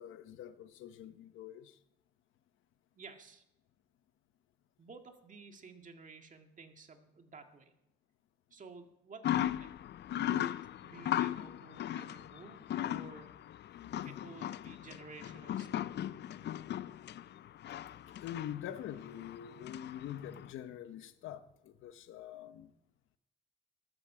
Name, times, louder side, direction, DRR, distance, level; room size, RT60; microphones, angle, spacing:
voice 1, 0.0-1.8 13.7-14.2 18.2-22.7, left 10 dB, 85° left, 1.0 m, -45 dB
voice 2, 3.0-3.4 4.8-7.7 8.5-9.7 10.2-13.4 14.0-15.8, right 4 dB, 40° right, 2.0 m, -53 dB
sound 1, 9.2-20.5, left 12 dB, 60° left, 0.5 m, -38 dB
13.5 x 13.0 x 5.0 m
cardioid pair, 90°, 20 cm